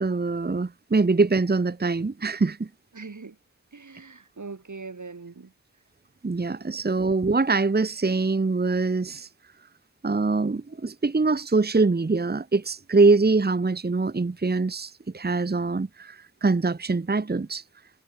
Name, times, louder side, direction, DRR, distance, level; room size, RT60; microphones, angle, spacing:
voice 1, 0.0-2.7 6.2-9.3 10.0-17.6, right 3 dB, 35° right, 1.0 m, -23 dB
voice 2, 2.9-3.4 3.7-5.5 6.7-6.8, right 4 dB, 75° right, 5.5 m, -41 dB
wide cardioid pair, 50°, 30 cm